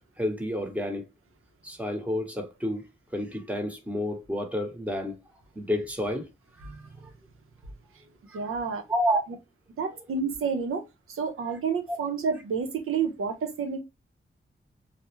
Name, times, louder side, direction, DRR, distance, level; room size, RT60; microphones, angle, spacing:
voice 1, 0.2-1.0 1.6-2.8 3.1-5.1 5.6-6.3 6.6-6.7 8.3-8.4 8.9-9.2 11.9-12.0, equal, 5° right, 0.8 m, -29 dB
voice 2, 8.3-8.9 9.8-13.8, right 5 dB, 90° right, 0.6 m, -30 dB
2.3 x 2.0 x 2.8 m
cardioid pair, 60°, 21 cm